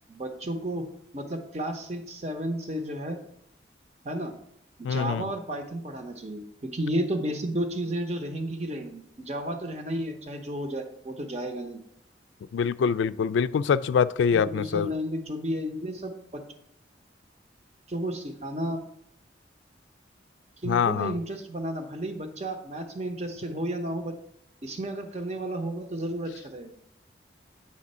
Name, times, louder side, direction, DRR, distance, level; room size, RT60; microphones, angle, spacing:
voice 1, 0.1-0.8 1.1-3.2 4.0-4.3 4.8-11.8 14.3-16.4 17.9-18.8 20.6-24.1 24.6-26.8, right 1 dB, 35° right, 0.8 m, -32 dB
voice 2, 4.8-5.3 12.5-14.9 20.6-21.2, left 6 dB, 85° left, 0.3 m, -24 dB
8.5 x 3.6 x 5.4 m
head